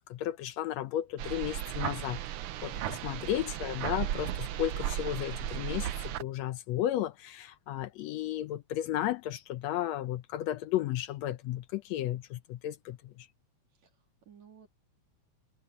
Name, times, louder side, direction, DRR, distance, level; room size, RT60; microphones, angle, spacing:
voice 1, 0.0-2.2 2.6-13.3, left 12 dB, 75° left, 1.7 m, -34 dB
sound 1, 1.2-6.2, right 12 dB, 90° right, 1.2 m, -35 dB
voice 2, 13.7-14.7, right 7 dB, 70° right, 4.1 m, -58 dB
omnidirectional pair, 3.3 m